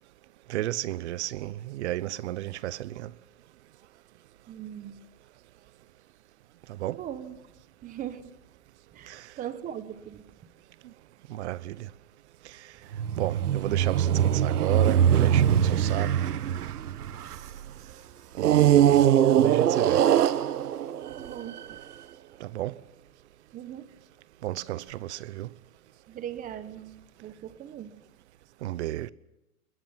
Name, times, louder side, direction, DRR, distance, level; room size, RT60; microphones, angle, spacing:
voice 1, 0.5-3.1 6.8-7.0 9.1-9.2 11.3-11.9 13.2-16.1 18.4-20.0 22.4-22.8 24.4-25.5 28.6-29.1, right 15 dB, 50° right, 1.0 m, -33 dB
voice 2, 4.5-5.0 6.9-7.4 7.8-8.2 8.9-10.2 21.2-21.8 23.5-23.9 26.1-27.9, right 10 dB, 20° right, 1.4 m, -39 dB
sound 1, 12.9-17.6 18.4-21.8, right 10 dB, 80° right, 1.3 m, -22 dB
27.0 x 21.5 x 6.0 m
hypercardioid pair, 145°, 45 cm